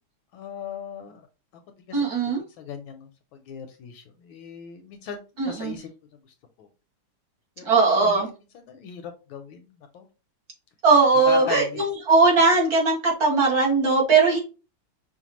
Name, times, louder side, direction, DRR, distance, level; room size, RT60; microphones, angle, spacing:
voice 1, 0.3-1.2 1.8-2.1 2.6-5.2 5.4-5.9 6.6-6.7 7.6-8.2 8.7-10.1 11.3-11.8, left 7 dB, 75° left, 7 dB, 1.3 m, -37 dB
voice 2, 1.9-2.4 5.4-5.7 7.6-8.3 10.8-14.4, right 4 dB, 50° right, -1 dB, 1.4 m, -19 dB
5.8 x 2.3 x 3.0 m, 0.32 s
omnidirectional pair, 2.4 m